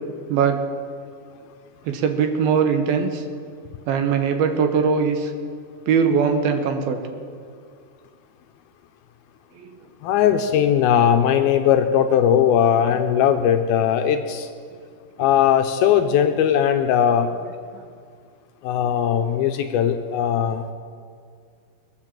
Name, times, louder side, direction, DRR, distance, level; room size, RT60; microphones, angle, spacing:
voice 1, 0.3-0.6 1.9-3.2 3.9-5.3 5.9-7.0 9.6-9.7, right 6 dB, 70° right, 6 dB, 2.7 m, -20 dB
voice 2, 10.0-14.5 15.2-17.3 18.6-20.7, left 9 dB, 80° left, 7 dB, 2.3 m, -19 dB
22.0 x 7.8 x 7.4 m, 2.2 s
omnidirectional pair, 4.7 m